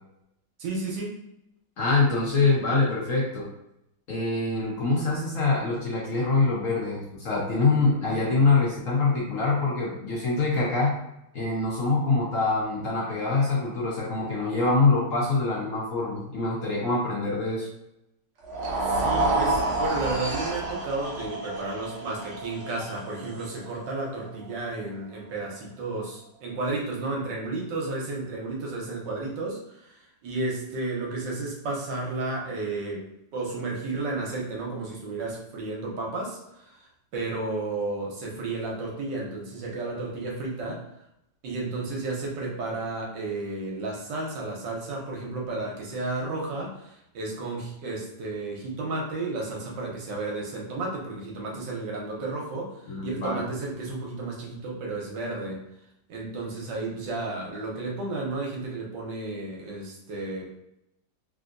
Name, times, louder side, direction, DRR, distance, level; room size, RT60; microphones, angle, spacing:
voice 1, 0.6-1.2 18.9-33.0 33.3-36.9 37.1-40.8 41.4-55.6 56.1-60.6, right 2 dB, 75° right, -2 dB, 1.5 m, -32 dB
voice 2, 1.8-3.5 4.1-10.9 11.3-17.7 52.9-53.4, left 3 dB, 55° left, -5 dB, 1.0 m, -24 dB
sound 1, 18.4-24.7, right 2 dB, 60° right, 0.8 m, -29 dB
3.5 x 2.7 x 2.5 m, 0.83 s
omnidirectional pair, 2.0 m